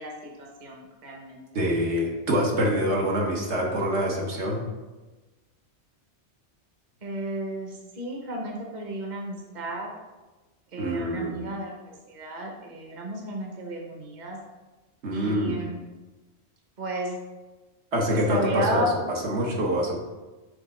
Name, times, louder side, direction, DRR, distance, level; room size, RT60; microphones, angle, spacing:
voice 1, 0.0-1.4 7.0-9.9 10.7-14.4 15.1-15.8 16.8-17.1 18.1-19.0, right 1 dB, 45° right, 0 dB, 1.0 m, -33 dB
voice 2, 1.5-4.6 10.8-11.3 15.0-15.6 17.9-18.8 19.2-20.0, equal, 75° right, -2 dB, 1.4 m, -25 dB
6.5 x 3.5 x 4.3 m, 1.2 s
omnidirectional pair, 1.2 m